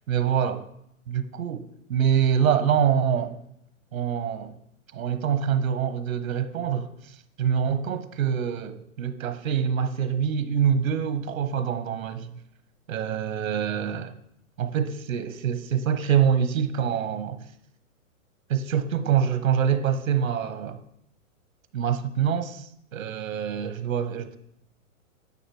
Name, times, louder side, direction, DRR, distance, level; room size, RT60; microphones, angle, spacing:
voice 1, 0.1-0.6 1.1-1.6 1.9-3.4 3.9-4.5 4.9-12.4 12.9-14.1 14.6-17.4 18.5-20.8 21.7-24.4, right 8 dB, 75° right, 1.2 m, -25 dB
10.0 x 6.4 x 4.8 m
hypercardioid pair, 145°, 41 cm